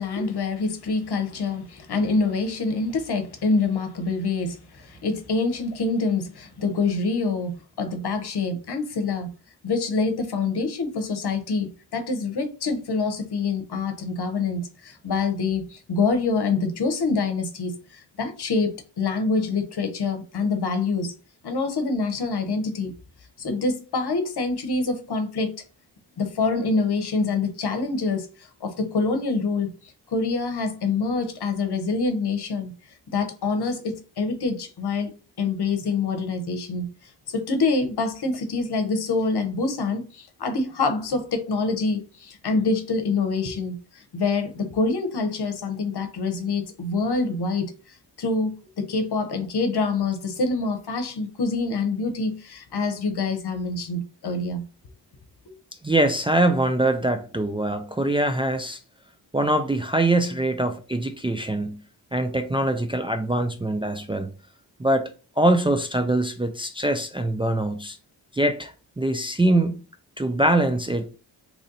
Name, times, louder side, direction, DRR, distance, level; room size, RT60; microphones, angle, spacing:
voice 1, 0.0-9.3 9.6-21.1 21.4-22.9 23.4-25.5 26.2-29.7 30.1-32.7 33.1-35.1 35.4-36.9 37.3-54.6, left 3 dB, 60° left, 1.0 m, -26 dB
voice 2, 55.8-58.8 59.3-61.8 62.1-64.3 64.8-65.1 65.4-68.0 68.3-69.8 70.2-71.2, right 1 dB, 10° right, 0.4 m, -23 dB
3.1 x 2.6 x 3.9 m
supercardioid pair, 45°, 45 cm